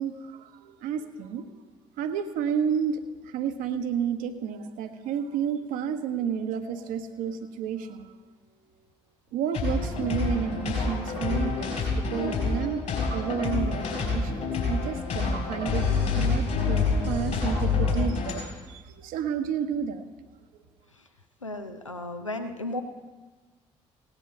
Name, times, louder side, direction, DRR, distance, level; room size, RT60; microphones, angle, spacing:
voice 1, 0.0-1.7 2.0-8.2 9.3-12.8 13.1-20.3, right 7 dB, 60° right, 9 dB, 0.8 m, -31 dB
sound 1, 9.5-18.3, left 4 dB, 55° left, 4.3 m, -27 dB
voice 2, 21.4-22.8, left 2 dB, 90° left, 6 dB, 0.5 m, -34 dB
16.5 x 9.8 x 5.6 m, 1.3 s
figure-of-eight pair, 40°, 16 cm